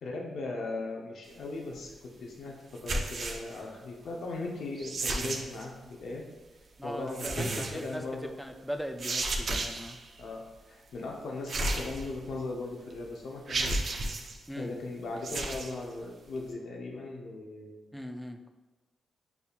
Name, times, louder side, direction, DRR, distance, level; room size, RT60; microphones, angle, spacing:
voice 1, 0.0-1.9 2.2-2.5 2.8-6.2 6.8-8.3 10.2-13.9 14.2-14.3 14.5-17.9, left 3 dB, 75° left, -1 dB, 0.7 m, -38 dB
sound 1, 2.8-3.6 4.8-5.6 7.1-7.9 9.0-10.0 11.5-12.4 12.9-13.0 13.5-14.4 15.2-15.7, right 2 dB, 55° right, 0.5 m, -33 dB
voice 2, 6.8-10.0 14.5-14.7 17.9-18.5, equal, ahead, 5 dB, 0.4 m, -39 dB
6.9 x 2.7 x 2.4 m, 1.2 s
cardioid pair, 90°, 0 cm